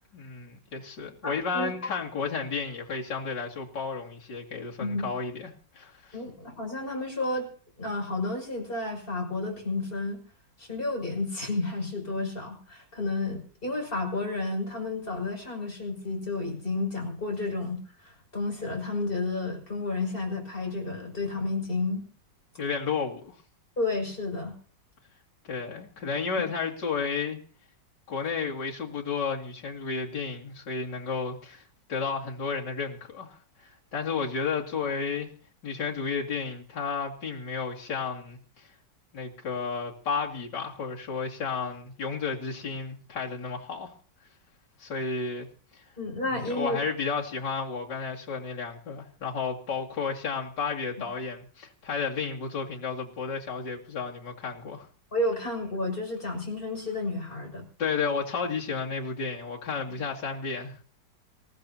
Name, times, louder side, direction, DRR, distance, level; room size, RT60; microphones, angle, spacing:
voice 1, 0.1-6.1 22.6-23.4 25.4-27.4 28.1-31.6 31.9-33.4 33.9-35.3 35.6-38.7 39.1-43.9 44.8-45.5 46.3-54.9 57.8-60.8, left 5 dB, 70° left, -2 dB, 3.1 m, -32 dB
voice 2, 1.2-1.7 4.8-5.1 6.1-7.5 7.8-10.2 10.6-22.0 23.8-24.5 46.0-46.8 55.1-57.6, left 2 dB, 30° left, 0 dB, 6.3 m, -31 dB
27.0 x 15.0 x 2.8 m, 0.43 s
omnidirectional pair, 2.0 m